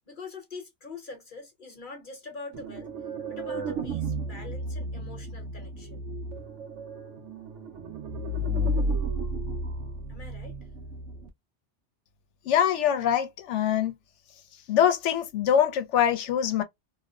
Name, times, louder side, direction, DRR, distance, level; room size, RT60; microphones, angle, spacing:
voice 1, 0.1-2.9 3.3-6.0 10.1-10.5, left 4 dB, 50° left, 1.0 m, -43 dB
sound 1, 2.5-11.3, right 1 dB, 90° right, 1.0 m, -32 dB
voice 2, 12.4-13.9 14.7-16.6, left 9 dB, 85° left, 0.9 m, -24 dB
2.7 x 2.0 x 2.2 m
omnidirectional pair, 1.2 m